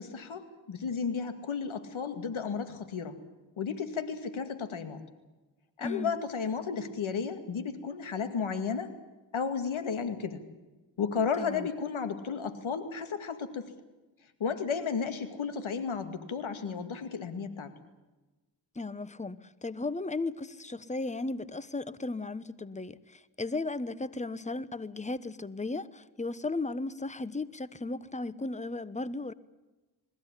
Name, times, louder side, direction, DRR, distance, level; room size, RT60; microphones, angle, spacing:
voice 1, 0.0-3.2 3.6-5.0 5.8-8.9 9.3-10.4 11.0-13.7 14.4-17.7, left 6 dB, 80° left, 2.3 m, -33 dB
voice 2, 5.8-6.1 11.4-11.7 18.7-29.3, left 3 dB, 15° left, 1.1 m, -35 dB
21.5 x 15.5 x 9.9 m
cardioid pair, 40°, 48 cm